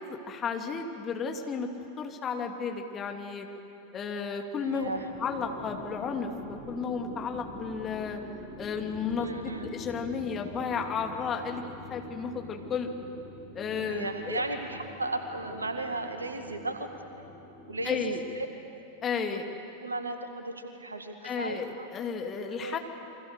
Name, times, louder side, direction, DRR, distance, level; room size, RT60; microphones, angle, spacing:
voice 1, 0.1-1.7 2.0-3.5 3.9-4.9 5.2-8.2 8.6-11.6 11.9-12.9 13.5-14.4 17.8-18.2 19.0-19.4 21.2-22.8, left 5 dB, 25° left, 3 dB, 2.6 m, -33 dB
voice 2, 4.6-5.0 9.2-9.7 13.9-16.9 17.7-18.5 19.3-19.4 19.8-21.9 22.4-22.8, right 2 dB, 80° right, 6 dB, 2.1 m, -35 dB
sound 1, 4.8-18.5, equal, ahead, 5.6 m, -45 dB
29.0 x 24.5 x 6.8 m, 2.9 s
figure-of-eight pair, 90°, 0 cm